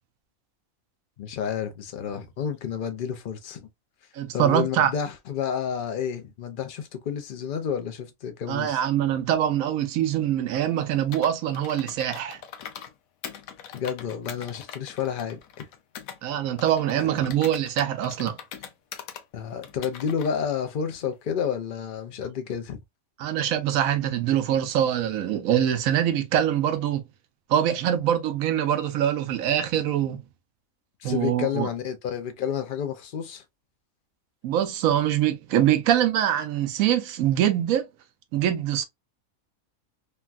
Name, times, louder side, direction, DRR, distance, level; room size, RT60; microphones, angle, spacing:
voice 1, 1.2-3.7 4.3-8.8 13.7-15.7 17.0-17.1 19.3-22.8 31.0-33.4, left 8 dB, 55° left, 0.6 m, -30 dB
voice 2, 4.1-4.9 8.5-12.4 16.2-18.4 23.2-27.0 27.5-30.2 31.0-31.7 34.4-37.9 38.3-38.9, right 11 dB, 85° right, 1.0 m, -24 dB
Computer keyboard, 11.1-12.9 13.2-16.2 16.6-19.2 19.6-20.3, left 9 dB, 80° left, 1.0 m, -41 dB
3.2 x 2.3 x 2.4 m
omnidirectional pair, 1.4 m